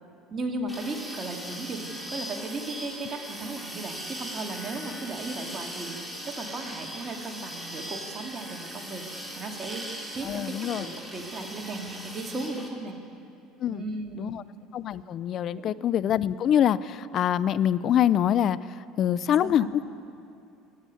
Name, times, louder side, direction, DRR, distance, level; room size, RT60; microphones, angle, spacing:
voice 1, 0.3-9.1 9.4-13.0 13.7-14.4 15.5-15.8 19.4-19.8, right 2 dB, 35° right, 2 dB, 2.0 m, -36 dB
sound 1, 0.7-12.7, equal, 5° right, 2.3 m, -39 dB
voice 2, 10.2-10.9 13.6-13.9 14.2-14.4 14.7-18.6 19.0-19.8, left 10 dB, 50° left, 18 dB, 0.4 m, -25 dB
20.0 x 7.8 x 6.5 m, 2.6 s
hypercardioid pair, 80°, 0 cm